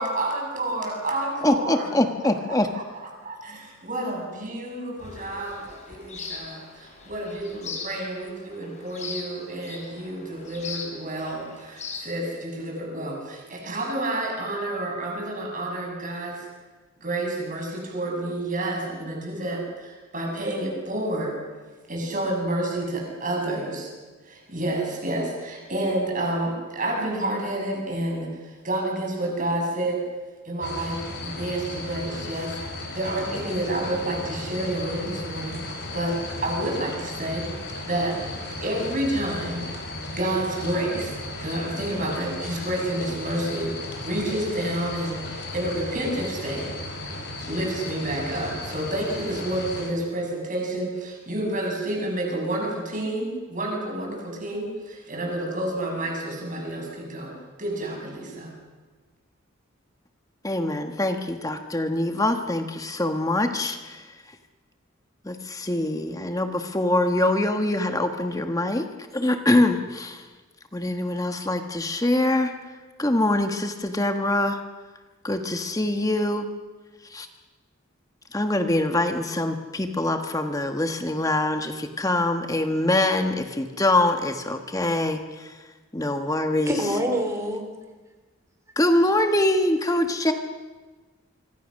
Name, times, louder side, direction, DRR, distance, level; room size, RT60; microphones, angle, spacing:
voice 1, 0.0-1.9 2.5-16.5 17.0-21.3 21.9-23.9 24.2-30.0 30.4-35.6 35.9-36.2 36.4-37.4 37.9-39.7 40.1-41.1 41.4-46.7 47.4-58.5, right 1 dB, 40° right, 0 dB, 6.8 m, -29 dB
voice 2, 1.4-2.7 60.4-64.0 65.2-68.9 69.1-70.2 70.7-72.5 73.0-74.6 75.2-76.5 77.1-77.3 78.3-85.5 85.9-86.7 88.8-90.3, left 1 dB, 15° left, 6 dB, 1.2 m, -24 dB
sound 1, 5.0-12.0, left 4 dB, 35° left, 4.8 m, -39 dB
sound 2, 30.6-49.9, left 2 dB, 50° left, 4.8 m, -35 dB
voice 3, 86.7-87.7, equal, 15° right, 4 dB, 3.0 m, -25 dB
25.5 x 25.0 x 6.4 m, 1.3 s
head